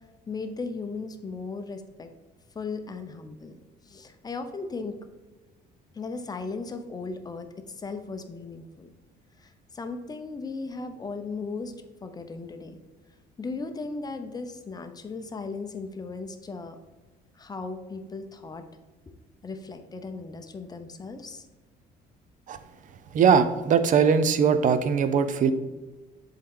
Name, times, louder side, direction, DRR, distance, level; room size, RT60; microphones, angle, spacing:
voice 1, 0.3-2.1 2.5-3.6 3.8-5.0 5.9-8.9 9.4-11.7 12.0-12.8 13.4-16.8 17.3-18.6 19.4-21.5, left 4 dB, 25° left, 8 dB, 0.6 m, -36 dB
voice 2, 23.1-25.5, right 6 dB, 50° right, 11 dB, 0.6 m, -21 dB
7.4 x 3.7 x 3.7 m, 1.2 s
cardioid pair, 110°, 17 cm